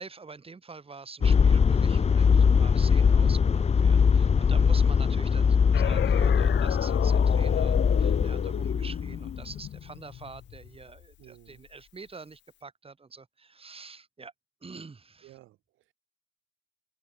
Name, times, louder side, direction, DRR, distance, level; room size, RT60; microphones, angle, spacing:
voice 1, 0.0-14.3 14.6-15.3, right 4 dB, 30° right, 3.6 m, -46 dB
sound 1, 1.2-9.5, left 6 dB, 30° left, 0.7 m, -22 dB
sound 2, 5.7-11.1, left 12 dB, 65° left, 0.8 m, -34 dB
voice 2, 8.5-9.0 11.2-11.7 15.2-15.9, right 15 dB, 90° right, 5.6 m, -54 dB
open air
cardioid pair, 90°, 20 cm